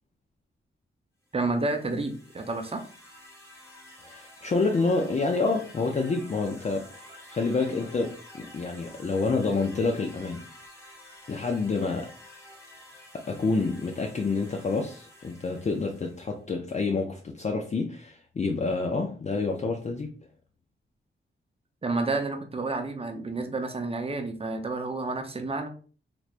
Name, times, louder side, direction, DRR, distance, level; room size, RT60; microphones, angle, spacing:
sound 1, 1.3-16.4, left 1 dB, 10° left, 1.0 m, -50 dB
voice 1, 1.3-2.8 21.8-25.7, right 3 dB, 30° right, 0.6 m, -30 dB
voice 2, 4.0-10.4 11.3-12.1 13.1-20.1, left 3 dB, 35° left, 0.4 m, -28 dB
3.3 x 3.0 x 2.4 m
wide cardioid pair, 105°, 20 cm